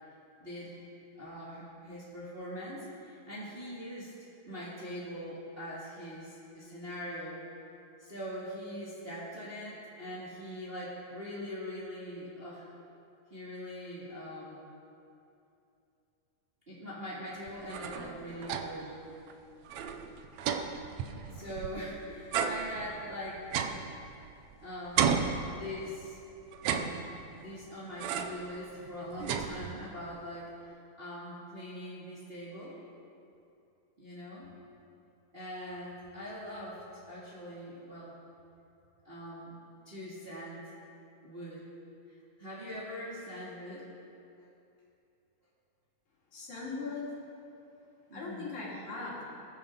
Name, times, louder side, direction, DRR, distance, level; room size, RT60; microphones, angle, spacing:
voice 1, 0.4-0.8 1.2-4.1 4.4-7.4 8.0-12.7 13.3-14.6 16.7-19.1 21.3-23.5 24.6-25.1 25.5-26.2 26.6-26.9 27.4-30.5 31.0-32.8 34.0-34.5 35.3-38.2 39.0-39.6 39.9-40.7 41.2-41.6 42.1-43.9 48.1-48.5, equal, 20° right, -8 dB, 2.0 m, -42 dB
sound 1, 17.5-18.9 19.3-19.4 19.7-21.9 22.3-24.5 25.0-26.0 26.5-27.4 28.0-28.5 28.9-30.0, right 7 dB, 75° right, 1.6 m, -34 dB
voice 2, 46.3-47.1 48.1-49.2, left 4 dB, 60° left, -5 dB, 3.8 m, -39 dB
21.5 x 10.5 x 3.8 m, 2.7 s
omnidirectional pair, 3.9 m